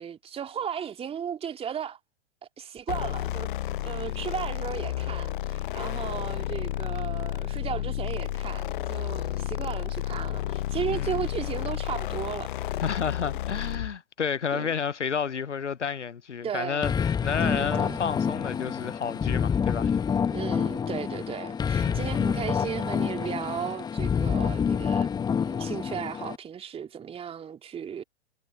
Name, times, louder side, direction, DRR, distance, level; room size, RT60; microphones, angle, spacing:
voice 1, 0.0-2.0 2.6-3.5 3.8-12.8 14.5-14.7 16.4-16.9 17.4-18.0 20.3-25.1 25.4-28.0, right 8 dB, 15° right, 2.5 m, -35 dB
sound 1, 2.9-13.9, left 14 dB, 45° left, 0.6 m, -31 dB
voice 2, 12.8-20.0 21.8-22.0, left 6 dB, 85° left, 0.6 m, -31 dB
sound 2, 16.8-26.4, left 7 dB, 10° left, 1.1 m, -27 dB
figure-of-eight pair, 105°, 34 cm